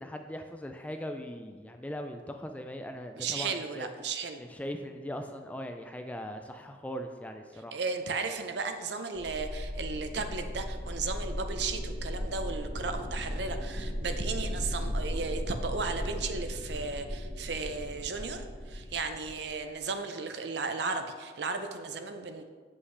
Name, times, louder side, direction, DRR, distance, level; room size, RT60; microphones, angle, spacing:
voice 1, 0.0-3.9 4.4-7.8, equal, 10° left, 5 dB, 0.3 m, -40 dB
voice 2, 3.2-4.4 7.7-22.5, right 4 dB, 65° right, 7 dB, 0.6 m, -35 dB
sound 1, 9.2-19.8, equal, 50° left, 1.3 m, -36 dB
8.0 x 5.6 x 3.2 m, 1.5 s
head